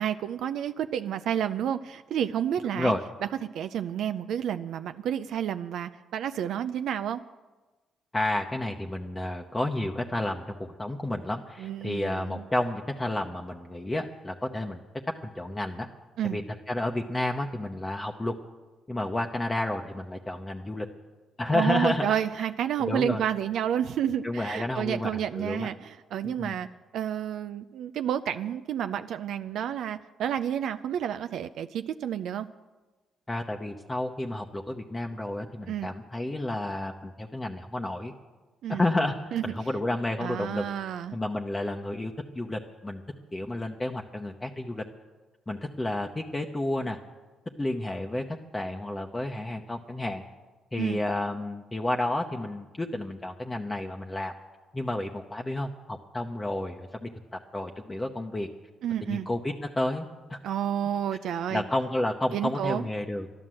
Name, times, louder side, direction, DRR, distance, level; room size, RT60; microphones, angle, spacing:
voice 1, 0.0-2.9 3.5-7.2 11.6-12.4 16.2-16.4 21.5-26.7 26.9-32.5 35.7-35.9 38.6-38.9 39.3-39.4 40.2-41.2 50.8-51.0 58.8-59.3 60.4-61.6 62.3-62.9, right 9 dB, 75° right, 10 dB, 0.4 m, -30 dB
voice 2, 8.1-14.8 15.2-15.9 16.2-16.4 16.7-18.3 18.9-20.9 21.4-22.2 22.8-23.2 24.2-25.7 26.2-26.6 33.3-38.1 38.7-40.6 41.1-43.0 43.3-44.8 45.5-47.0 47.6-48.2 48.5-50.2 50.7-54.3 54.7-58.5 59.0-60.4 61.5-63.3, left 1 dB, 15° left, 2 dB, 0.9 m, -31 dB
12.0 x 11.0 x 7.6 m, 1.2 s
cardioid pair, 90°, 0 cm